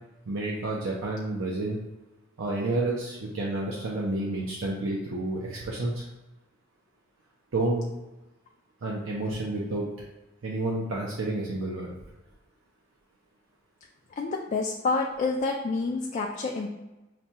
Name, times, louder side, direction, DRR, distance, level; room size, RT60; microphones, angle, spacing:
voice 1, 0.3-1.8 2.4-6.1 7.5-7.9 8.8-10.1 10.4-11.9, right 2 dB, 70° right, -3 dB, 0.6 m, -30 dB
voice 2, 14.2-16.7, left 3 dB, 35° left, 0 dB, 0.3 m, -28 dB
5.8 x 2.2 x 2.7 m, 1.0 s
head